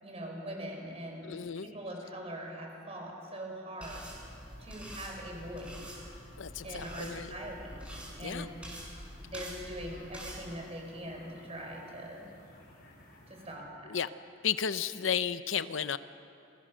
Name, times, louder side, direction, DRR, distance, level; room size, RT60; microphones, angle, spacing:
voice 1, 0.0-1.3 1.6-4.1 4.6-5.8 6.6-7.8 8.2-8.5 9.2-12.2 13.3-14.0, equal, 35° right, 1 dB, 5.1 m, -42 dB
voice 2, 1.2-1.7 6.4-7.3 8.2-8.5 13.9-14.1 14.4-16.0, left 7 dB, 85° left, 13 dB, 0.7 m, -33 dB
sound 1, 3.8-13.5, left 1 dB, 55° left, 5.8 m, -56 dB
sound 2, 3.8-10.4, equal, 5° right, 5.9 m, -46 dB
29.5 x 23.5 x 6.4 m, 2.7 s
head